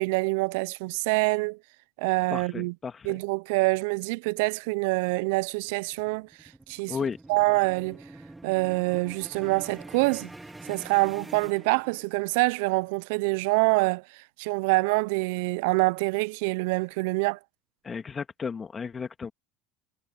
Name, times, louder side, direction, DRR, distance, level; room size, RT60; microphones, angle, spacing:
voice 1, 0.0-1.6 2.0-2.7 3.0-6.3 6.7-7.0 7.3-8.0 8.4-10.3 10.7-14.0 14.4-17.4, right 26 dB, 75° right, 0.3 m, -25 dB
voice 2, 2.3-3.2 6.9-7.2 17.8-19.3, left 5 dB, 30° left, 2.0 m, -34 dB
sound 1, 5.3-12.3, right 2 dB, 10° right, 2.9 m, -46 dB
supercardioid pair, 90°, 0 cm